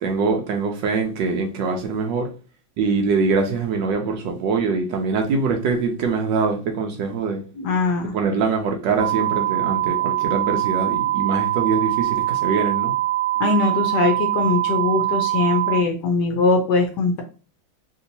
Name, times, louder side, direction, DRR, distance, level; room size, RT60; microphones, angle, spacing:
voice 1, 0.0-2.3 2.8-7.4 8.1-12.9, right 4 dB, 70° right, 1.2 m, -23 dB
voice 2, 7.6-8.1 13.4-17.2, left 3 dB, 70° left, 1.1 m, -21 dB
sound 1, 9.0-15.8, right 15 dB, 85° right, 1.4 m, -23 dB
3.4 x 2.8 x 2.7 m
omnidirectional pair, 2.2 m